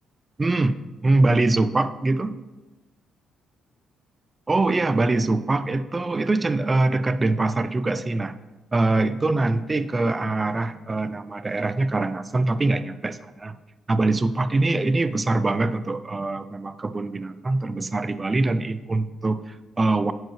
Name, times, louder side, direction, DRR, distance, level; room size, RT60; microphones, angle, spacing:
voice 1, 0.4-0.8 1.0-2.3 4.5-8.4 8.7-13.6 13.9-20.1, right 2 dB, 25° right, 13 dB, 0.4 m, -23 dB
9.1 x 4.6 x 3.1 m, 1.1 s
cardioid pair, 90°, 0 cm